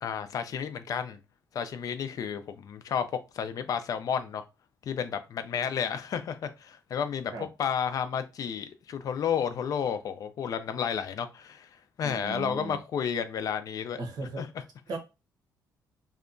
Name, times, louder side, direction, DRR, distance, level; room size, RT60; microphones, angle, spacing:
voice 1, 0.0-1.2 1.5-3.1 3.3-4.4 4.9-7.3 7.6-11.7 12.0-14.0 14.4-14.5, left 7 dB, 55° left, 0.3 m, -31 dB
voice 2, 12.0-12.8 14.0-14.4 14.9-15.0, right 3 dB, 65° right, 0.9 m, -36 dB
2.7 x 2.2 x 2.5 m
cardioid pair, 110°, 7 cm